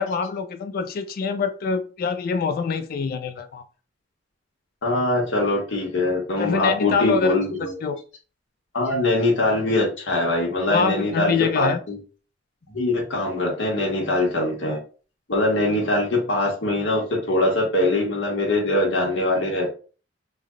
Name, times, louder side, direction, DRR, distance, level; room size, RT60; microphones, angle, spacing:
voice 1, 0.0-3.6 6.4-7.3 7.8-8.0 10.7-11.8, left 5 dB, 50° left, 0.3 m, -25 dB
voice 2, 4.8-7.8 8.7-12.0 12.7-14.8 15.3-19.7, left 2 dB, 90° left, 1.0 m, -22 dB
3.3 x 2.1 x 3.6 m
head